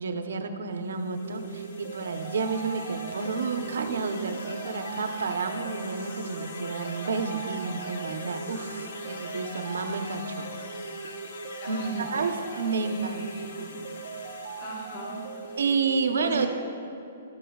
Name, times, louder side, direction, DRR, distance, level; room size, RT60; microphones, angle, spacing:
voice 1, 0.0-10.5 11.7-13.3 13.6-13.8 15.6-16.5, right 4 dB, 85° right, 7 dB, 0.8 m, -30 dB
sound 1, 0.9-16.0, left 3 dB, 55° left, 0.9 m, -44 dB
sound 2, 1.2-16.3, right 5 dB, 50° right, 0.6 m, -40 dB
voice 2, 11.6-12.3 12.7-14.0 14.6-15.6 16.2-16.5, right 1 dB, 25° left, -2 dB, 1.1 m, -40 dB
12.5 x 11.5 x 2.3 m, 2.8 s
hypercardioid pair, 180°, 0 cm